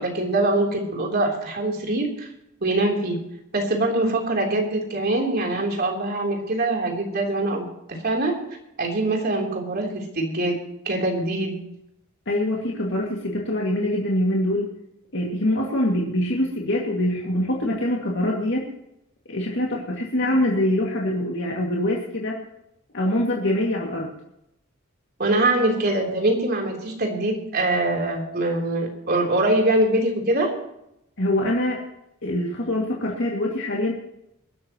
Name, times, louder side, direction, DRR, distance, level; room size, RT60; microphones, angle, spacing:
voice 1, 0.0-2.3 2.6-3.2 3.5-8.4 8.8-10.6 10.9-11.6 25.2-30.5, right 2 dB, 50° right, 1 dB, 3.5 m, -23 dB
voice 2, 12.3-14.7 15.1-18.7 19.3-22.4 22.9-24.1 31.2-31.8 32.2-33.9, left 1 dB, 60° left, -2 dB, 2.3 m, -24 dB
22.0 x 12.5 x 3.0 m, 0.81 s
head